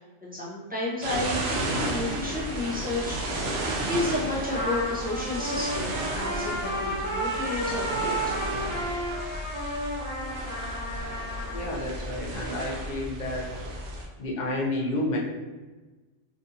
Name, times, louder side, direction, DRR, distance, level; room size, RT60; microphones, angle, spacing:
voice 1, 0.2-3.6 3.9-8.4, left 2 dB, 10° right, -7 dB, 0.6 m, -32 dB
sound 1, 1.0-14.0, right 1 dB, 65° right, 0.8 m, -33 dB
Trumpet, 4.5-11.7, equal, 20° left, 1.0 m, -32 dB
voice 2, 11.5-13.5 14.2-15.2, left 1 dB, 50° left, -2 dB, 0.6 m, -30 dB
3.4 x 2.5 x 2.7 m, 1.2 s
omnidirectional pair, 1.2 m